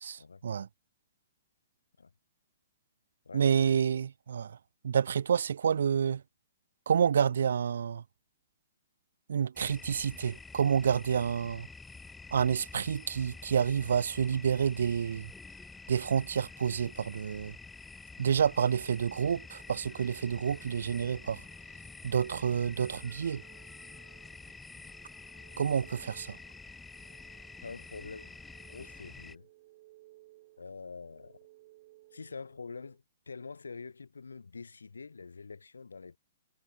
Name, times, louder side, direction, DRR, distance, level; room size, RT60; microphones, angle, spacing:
voice 1, 0.0-0.7 3.3-4.6 4.8-6.2 6.9-8.0 9.3-11.7 12.3-15.3 15.9-17.5 18.2-21.4 22.0-23.4 25.6-26.4, right 7 dB, 70° right, 0.3 m, -29 dB
voice 2, 3.2-3.8 27.6-28.3 28.7-29.5 30.6-31.4 32.1-36.2, left 4 dB, 80° left, 1.6 m, -45 dB
sound 1, 9.6-29.4, left 3 dB, 10° left, 2.6 m, -49 dB
sound 2, 17.8-33.0, right 18 dB, 45° right, 7.8 m, -62 dB
figure-of-eight pair, 120°, 0 cm